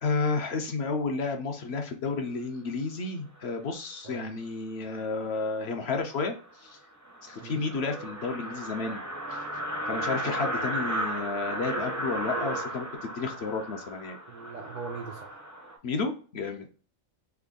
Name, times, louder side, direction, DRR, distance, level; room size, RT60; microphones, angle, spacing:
voice 1, 0.0-6.8 7.2-9.0 9.3-9.4 9.9-12.9 13.2-14.2 15.8-16.7, left 4 dB, 60° left, 5 dB, 0.8 m, -31 dB
voice 2, 4.0-4.4 7.4-7.7 14.3-15.3, right 5 dB, 75° right, 3 dB, 0.4 m, -40 dB
sound 1, 5.8-5.9 6.3-6.4 6.7-6.8 7.0-15.8, right 1 dB, 20° right, 0.5 m, -34 dB
3.4 x 2.3 x 3.5 m, 0.39 s
omnidirectional pair, 1.4 m